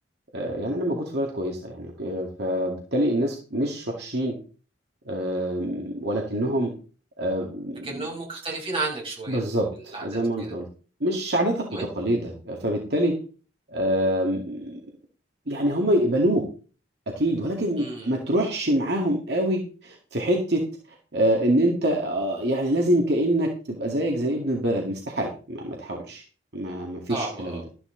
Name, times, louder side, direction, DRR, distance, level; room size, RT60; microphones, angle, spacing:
voice 1, 0.3-4.4 5.1-6.7 7.2-8.1 9.3-10.7 11.0-11.7 12.0-13.1 13.7-14.8 15.5-16.5 17.1-20.6 21.1-26.2 26.5-27.6, right 1 dB, 65° right, 0 dB, 2.2 m, -25 dB
voice 2, 7.8-9.4 9.9-10.5 11.7-11.9 17.8-18.1 27.1-27.6, right 2 dB, 30° right, -2 dB, 6.1 m, -32 dB
13.0 x 9.9 x 3.9 m, 0.38 s
head